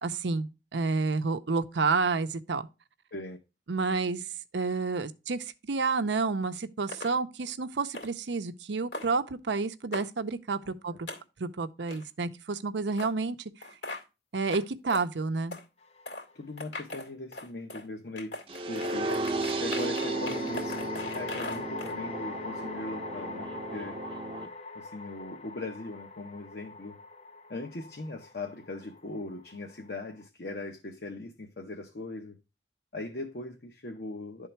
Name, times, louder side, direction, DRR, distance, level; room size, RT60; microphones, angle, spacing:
voice 1, 0.0-2.7 3.7-4.2 4.5-11.1 11.4-13.5 14.3-15.6, right 4 dB, 90° right, 0.6 m, -30 dB
sound 1, 6.9-7.1 7.9-8.1 8.9-9.1 9.9-10.1 11.1-11.2 11.9-12.1 13.0-13.1 13.6-14.0 14.5-14.6 14.9-15.1 15.5-15.6 16.0-16.2 16.6-17.9 18.2-21.9, left 2 dB, 80° left, 2.3 m, -39 dB
sound 2, 15.8-16.5 18.9-30.3, left 3 dB, 35° left, 0.5 m, -42 dB
voice 2, 16.3-18.4 18.7-19.2 19.6-24.0 24.7-27.0 27.5-32.4 32.9-34.5, left 2 dB, 65° left, 0.9 m, -40 dB
sound 3, 18.5-24.5, right 2 dB, 30° right, 0.6 m, -34 dB
11.5 x 3.8 x 4.4 m
head